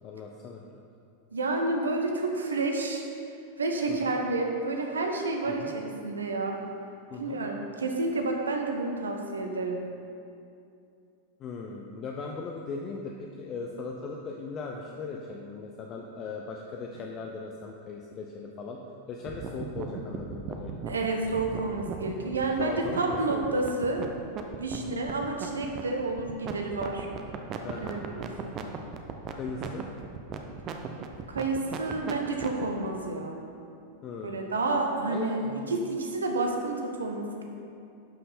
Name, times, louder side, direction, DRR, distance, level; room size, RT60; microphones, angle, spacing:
voice 1, 0.0-0.7 4.0-4.1 5.5-5.7 7.1-7.4 11.4-18.8 19.1-20.9 22.6-23.6 24.8-25.0 27.6-28.1 29.3-29.8 34.0-34.6 35.1-35.8, left 4 dB, 30° left, 1 dB, 0.6 m, -38 dB
voice 2, 1.3-3.0 3.6-6.6 7.2-9.8 20.8-24.0 24.6-27.1 27.8-28.5 31.3-33.4 34.2-37.4, right 2 dB, 70° right, 2 dB, 1.0 m, -30 dB
sound 1, 19.3-32.6, right 7 dB, 35° right, 0.7 m, -37 dB
11.5 x 5.6 x 4.2 m, 2.6 s
figure-of-eight pair, 90°, 0 cm